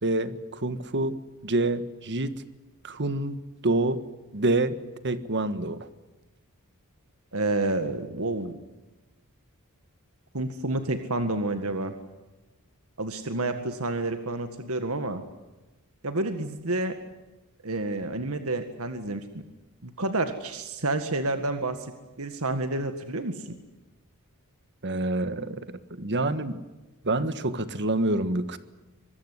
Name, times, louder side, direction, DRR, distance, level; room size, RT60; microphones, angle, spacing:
voice 1, 0.0-2.4 2.8-4.0 4.3-4.8 5.0-5.9 24.8-26.6 27.0-28.6, right 2 dB, 55° right, 12 dB, 1.6 m, -27 dB
voice 2, 7.3-8.6 10.3-11.9 13.0-15.2 16.0-17.0 17.6-19.4 19.8-21.9 22.2-23.6, right 2 dB, 70° right, 8 dB, 1.9 m, -29 dB
25.0 x 21.0 x 9.7 m, 1.1 s
head